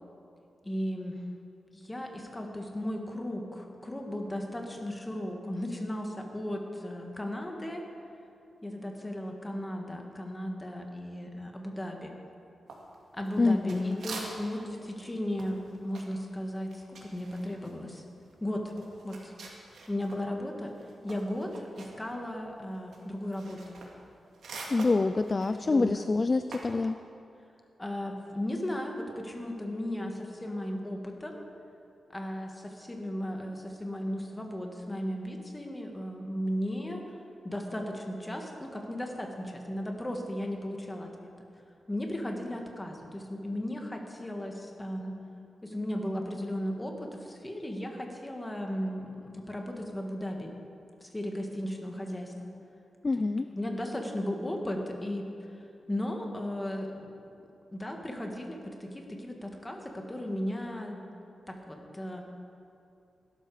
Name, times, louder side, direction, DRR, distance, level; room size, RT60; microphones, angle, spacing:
voice 1, 0.6-1.3 1.7-7.8 8.6-12.1 13.1-18.0 18.4-18.7 19.0-19.3 19.9-20.7 21.0-23.8 25.6-26.1 27.8-31.4 32.1-37.0 37.4-41.3 41.9-45.2 45.6-50.5 51.0-52.5 53.5-55.3 55.5-55.6 55.9-57.1 57.7-61.1 61.5-62.2, left 1 dB, 15° left, 2 dB, 1.8 m, -36 dB
sound 1, 12.7-14.7 15.0-20.2 20.5-26.8, right 3 dB, 80° right, 2.4 m, -46 dB
voice 2, 13.4-14.0 24.7-27.0 53.0-53.5, left 3 dB, 30° left, 11 dB, 0.4 m, -26 dB
16.5 x 12.0 x 5.0 m, 2.7 s
wide cardioid pair, 110°, 0 cm